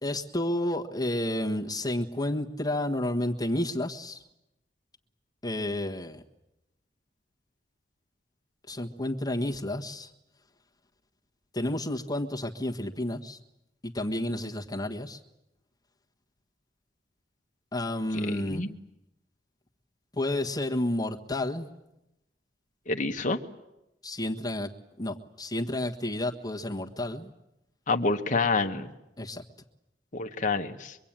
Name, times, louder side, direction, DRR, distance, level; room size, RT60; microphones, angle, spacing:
voice 1, 0.0-4.2 5.4-6.2 8.7-10.1 11.5-13.4 13.8-15.2 17.7-18.6 20.1-21.7 24.0-24.7 25.0-27.3 29.2-29.4, left 1 dB, 20° left, 1 dB, 1.5 m, -31 dB
voice 2, 18.3-18.7 22.9-23.4 27.9-28.9 30.1-31.0, left 3 dB, 45° left, 5 dB, 1.2 m, -28 dB
24.5 x 23.5 x 8.9 m, 0.90 s
head